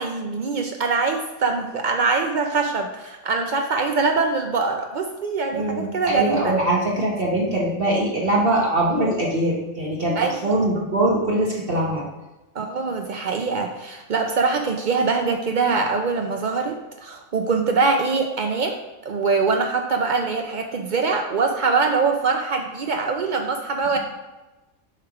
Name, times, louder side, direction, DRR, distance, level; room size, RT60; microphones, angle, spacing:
voice 1, 0.0-6.6 10.2-10.5 12.6-24.0, right 4 dB, 85° right, 3 dB, 0.4 m, -23 dB
voice 2, 5.5-10.2 10.4-12.0, right 1 dB, 45° right, -3 dB, 1.1 m, -22 dB
7.3 x 3.3 x 4.7 m, 1.1 s
omnidirectional pair, 1.5 m